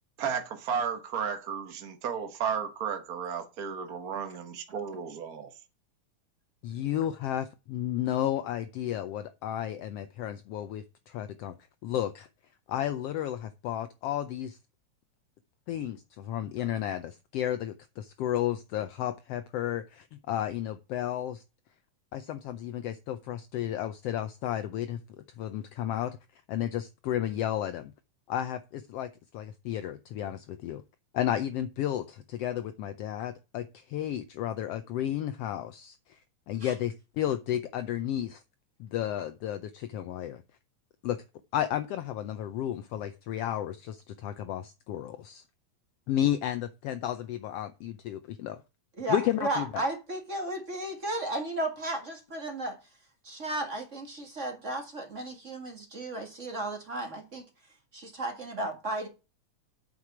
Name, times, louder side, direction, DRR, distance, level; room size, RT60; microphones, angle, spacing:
voice 1, 0.2-5.5, right 7 dB, 60° right, 0.9 m, -33 dB
voice 2, 6.6-11.6 11.8-12.3 12.7-14.6 15.7-21.4 22.1-25.0 25.4-26.2 26.5-27.9 28.3-30.8 31.1-36.2 36.5-38.4 38.8-40.4 41.0-41.2 41.5-45.4 46.1-48.6 49.1-49.8, left 11 dB, 90° left, 1.3 m, -32 dB
voice 3, 49.0-52.8 53.2-57.4 57.9-59.1, right 1 dB, 30° right, 1.6 m, -34 dB
8.3 x 6.6 x 5.8 m
omnidirectional pair, 3.4 m